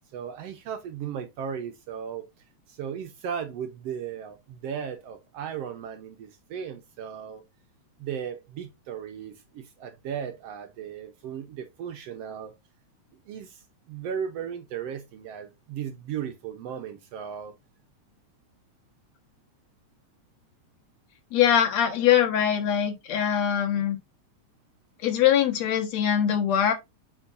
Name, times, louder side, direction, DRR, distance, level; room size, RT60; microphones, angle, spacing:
voice 1, 0.1-2.3 2.7-7.4 8.0-12.5 13.3-17.5, right 8 dB, 70° right, 1.6 m, -36 dB
voice 2, 21.3-24.0 25.0-26.7, left 9 dB, 70° left, 2.4 m, -22 dB
8.6 x 4.6 x 2.5 m
omnidirectional pair, 3.3 m